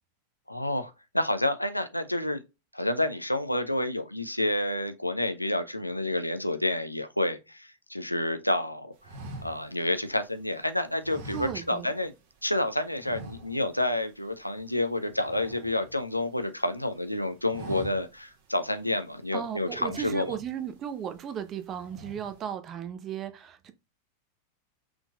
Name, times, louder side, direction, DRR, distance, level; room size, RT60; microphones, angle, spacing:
voice 1, 0.5-2.4 2.7-8.9 9.4-12.1 12.4-20.4, left 1 dB, 85° left, 0.6 m, -29 dB
sound 1, 9.0-10.5 11.0-12.1 12.4-12.6 13.0-13.9 14.2-14.4 14.7-16.4 16.8-17.1 17.4-18.3 18.7-18.8 19.6-20.7 21.2-21.5 21.8-22.4, right 2 dB, 50° right, 1.4 m, -44 dB
voice 2, 11.3-11.9 19.3-23.7, right 9 dB, 30° right, 0.7 m, -36 dB
6.0 x 3.8 x 2.3 m
figure-of-eight pair, 90°, 0 cm